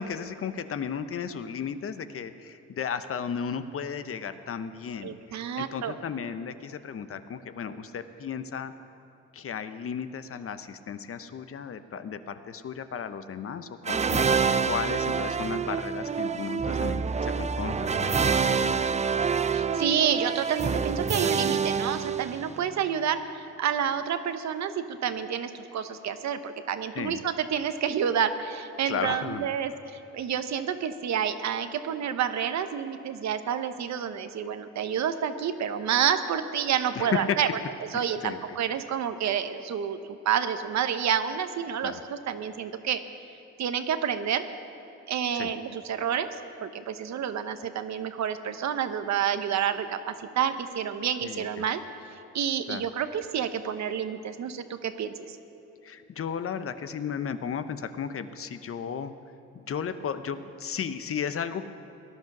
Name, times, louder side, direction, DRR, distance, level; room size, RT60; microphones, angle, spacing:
voice 1, 0.0-8.7 9.3-18.8 26.9-27.2 28.9-29.5 37.0-37.4 38.2-38.4 41.8-42.0 45.3-45.5 51.2-51.6 52.7-52.8 55.8-59.1 59.5-61.6, left 7 dB, 45° left, 10 dB, 0.8 m, -34 dB
voice 2, 5.0-5.9 16.7-16.9 19.5-37.5 37.9-43.0 43.6-44.4 45.1-46.3 46.6-51.8 52.3-55.4, right 8 dB, 65° right, 9 dB, 1.0 m, -29 dB
sound 1, 13.9-22.7, right 5 dB, 25° right, 0.5 m, -27 dB
18.5 x 11.0 x 6.0 m, 3.0 s
cardioid pair, 90°, 30 cm